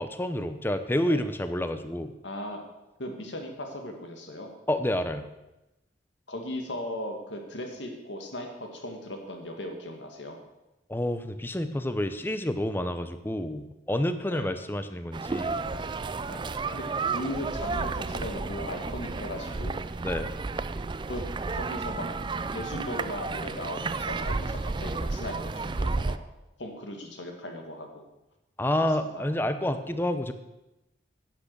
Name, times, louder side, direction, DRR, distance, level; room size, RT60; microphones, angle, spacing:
voice 1, 0.0-2.1 4.7-5.3 10.9-15.7 20.0-20.3 28.6-30.3, left 1 dB, 10° left, 10 dB, 0.6 m, -29 dB
voice 2, 2.2-2.6 3.0-4.5 6.3-10.4 14.3-14.6 16.3-16.4 16.7-19.8 21.1-21.2 21.5-22.1 22.5-26.2 26.6-28.1 28.8-29.2 29.6-29.7, left 1 dB, 85° left, 3 dB, 2.1 m, -37 dB
sound 1, 15.1-26.2, right 3 dB, 25° right, 0.4 m, -32 dB
10.5 x 8.8 x 6.7 m, 0.96 s
head